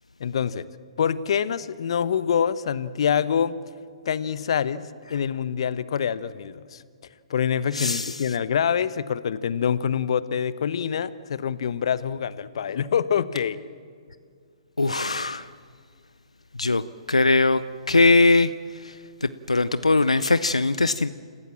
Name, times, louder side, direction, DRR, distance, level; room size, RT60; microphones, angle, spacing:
voice 1, 0.2-0.6 1.0-3.6 4.1-6.8 7.3-13.6, left 8 dB, 60° left, 16 dB, 0.9 m, -25 dB
voice 2, 7.7-8.1 14.8-15.5 16.6-16.8 17.1-17.6 17.9-18.5 18.8-18.9 19.2-21.1, left 3 dB, 90° left, 14 dB, 0.6 m, -20 dB
28.0 x 15.0 x 7.5 m, 2.2 s
figure-of-eight pair, 125°, 3 cm